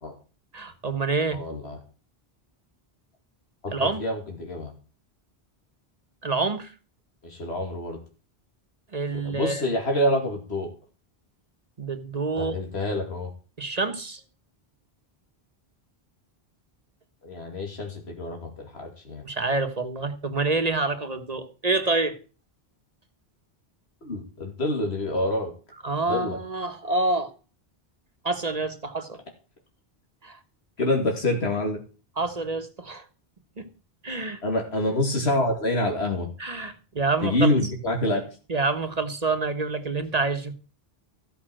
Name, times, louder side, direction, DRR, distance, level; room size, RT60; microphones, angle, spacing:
voice 1, 0.5-1.4 3.7-4.0 6.2-6.7 8.9-9.6 11.8-12.6 13.6-14.2 19.2-22.2 25.8-27.3 28.2-29.2 30.2-30.4 32.2-33.0 33.6-33.7 34.0-34.4 36.4-37.5 38.5-40.5, right 3 dB, 40° right, 1.4 m, -27 dB
voice 2, 1.3-1.8 3.6-4.7 7.2-8.0 9.2-10.7 12.4-13.3 17.2-19.2 24.0-25.5 26.1-26.4 30.8-31.8 34.4-36.3 37.2-38.2, left 1 dB, 85° left, 2.6 m, -27 dB
15.0 x 5.8 x 7.6 m
omnidirectional pair, 1.1 m